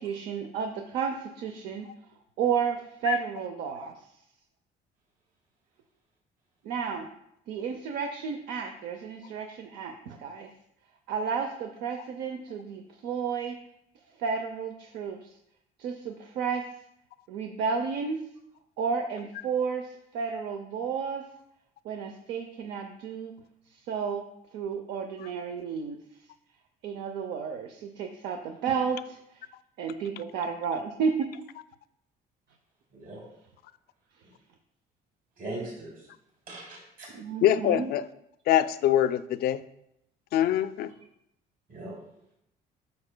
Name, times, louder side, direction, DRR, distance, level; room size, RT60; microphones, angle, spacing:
voice 1, 0.0-1.9 2.4-3.9 6.6-7.1 7.5-10.5 11.1-13.5 14.2-15.3 15.8-16.6 17.3-18.2 18.8-21.2 21.8-23.3 23.9-24.2 24.5-26.0 26.8-29.2 29.8-31.1 37.1-37.9, right 6 dB, 80° right, 5 dB, 0.7 m, -32 dB
voice 2, 32.9-33.2 35.4-36.1 36.5-37.1 41.7-42.0, right 2 dB, 55° right, -4 dB, 3.0 m, -39 dB
voice 3, 37.4-38.0 38.5-39.6 40.3-40.9, left 11 dB, 70° left, 14 dB, 0.4 m, -24 dB
9.5 x 6.6 x 2.2 m, 0.78 s
cardioid pair, 110°, 17 cm